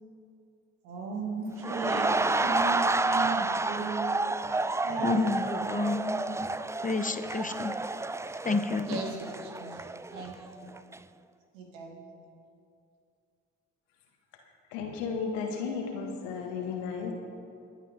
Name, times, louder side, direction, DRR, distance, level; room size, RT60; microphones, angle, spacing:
voice 1, 0.8-4.3 4.8-5.1 5.4-5.8 8.9-9.8 10.1-10.7 11.5-12.0, right 4 dB, 85° right, 0 dB, 2.0 m, -36 dB
sound 1, 1.6-10.5 10.8-11.0, right 2 dB, 10° right, 0.3 m, -30 dB
voice 2, 5.0-6.5 6.8-7.7 8.4-9.0, left 3 dB, 20° left, 10 dB, 1.1 m, -29 dB
voice 3, 14.7-17.1, left 5 dB, 85° left, 1 dB, 1.7 m, -34 dB
24.0 x 8.4 x 3.7 m, 2.4 s
hypercardioid pair, 45°, 38 cm